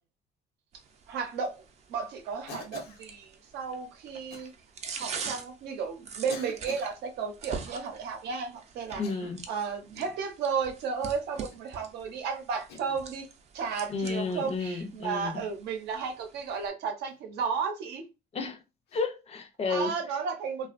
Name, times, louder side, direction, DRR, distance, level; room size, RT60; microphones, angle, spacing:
sound 1, 0.7-16.7, right 5 dB, 40° right, 0.5 m, -45 dB
voice 1, 1.1-1.6 1.9-4.5 4.9-9.0 9.5-13.3 13.5-18.1 19.7-20.7, right 6 dB, 80° right, 0.7 m, -33 dB
Cough, 2.5-3.1 4.3-4.5 5.4-5.5 6.3-6.9 8.9-9.5 9.9-10.2 11.3-11.7 12.7-13.1 14.5-14.8 17.0-17.2 18.9-19.1, left 5 dB, 80° left, 0.7 m, -46 dB
voice 2, 9.0-9.4 13.9-15.4 18.3-18.6 18.9-19.9, left 4 dB, 40° left, 0.5 m, -32 dB
2.5 x 2.3 x 2.4 m
cardioid pair, 110°, 17 cm